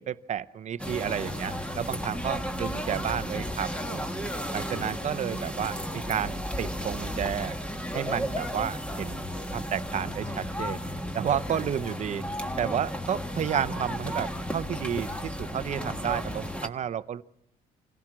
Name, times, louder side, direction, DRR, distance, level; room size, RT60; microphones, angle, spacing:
voice 1, 0.0-4.1 4.5-7.6 7.9-9.2 9.5-10.8 11.1-12.3 12.6-17.2, right 9 dB, 45° right, 15 dB, 0.7 m, -31 dB
sound 1, 0.8-16.7, equal, 5° left, 1.4 m, -34 dB
26.0 x 16.5 x 6.1 m, 0.78 s
cardioid pair, 110°, 17 cm